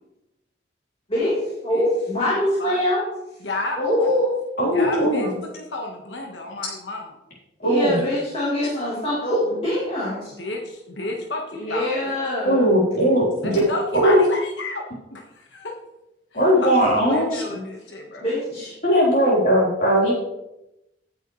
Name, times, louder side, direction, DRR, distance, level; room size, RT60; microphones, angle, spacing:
voice 1, 1.1-3.0 3.8-4.3 7.6-10.3 11.5-12.6 17.0-17.1 18.2-18.7, left 1 dB, 30° left, -9 dB, 3.8 m, -24 dB
voice 2, 3.4-3.8 4.7-5.3 5.5-7.1 7.9-8.1 10.4-12.2 13.4-14.8 15.1-15.2 15.5-15.6 16.3-18.3, left 2 dB, 80° left, 1 dB, 1.5 m, -31 dB
voice 3, 4.6-5.3 7.6-8.0 11.9-12.0 12.4-14.2 16.3-17.6 18.8-20.1, equal, 50° left, -6 dB, 4.1 m, -19 dB
18.0 x 6.7 x 3.2 m, 0.90 s
head